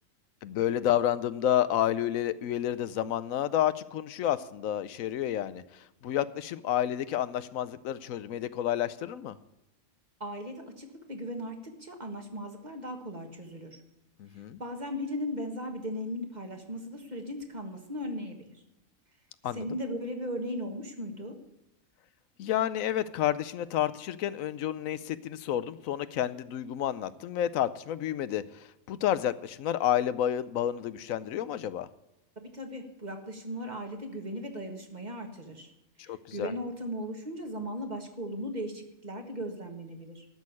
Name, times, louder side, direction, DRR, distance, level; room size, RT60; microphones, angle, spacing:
voice 1, 0.4-5.6 6.0-9.4 14.2-14.6 19.4-19.6 22.4-31.9 36.1-36.5, left 11 dB, 85° left, 15 dB, 1.1 m, -30 dB
voice 2, 10.2-13.8 14.6-18.6 19.5-21.4 32.3-35.7 36.0-40.2, equal, 35° right, 4 dB, 1.7 m, -37 dB
12.5 x 6.5 x 9.7 m, 0.90 s
omnidirectional pair, 1.4 m